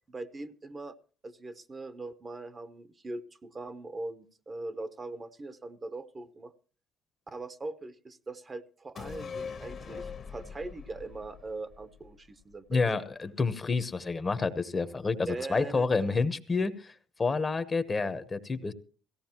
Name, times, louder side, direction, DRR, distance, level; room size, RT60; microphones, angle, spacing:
voice 1, 0.1-1.0 1.2-6.5 7.3-13.0 15.2-16.2, right 2 dB, 30° right, 11 dB, 0.9 m, -41 dB
sound 1, 9.0-12.5 12.9-13.0, left 6 dB, 45° left, 1.1 m, -42 dB
voice 2, 12.7-16.9 17.2-18.7, left 4 dB, 25° left, 12 dB, 1.0 m, -29 dB
17.0 x 15.5 x 3.0 m, 0.39 s
supercardioid pair, 90°, 0 cm